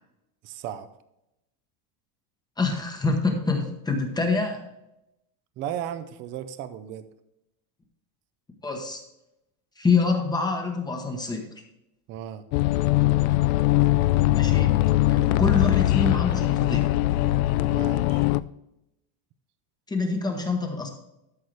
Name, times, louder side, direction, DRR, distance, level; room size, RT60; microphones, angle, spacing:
voice 1, 0.4-0.9 5.6-7.1 12.1-12.4 15.2-15.4 17.7-18.2, right 10 dB, 25° right, 11 dB, 0.4 m, -35 dB
voice 2, 2.6-4.6 8.6-9.0 9.8-11.4 14.3-14.8 15.1-16.8 19.9-20.9, left 4 dB, 10° left, 3 dB, 1.0 m, -26 dB
sound 1, 12.5-18.4, left 16 dB, 70° left, 0.5 m, -21 dB
13.0 x 6.3 x 3.3 m, 0.86 s
cardioid pair, 170°, 45 cm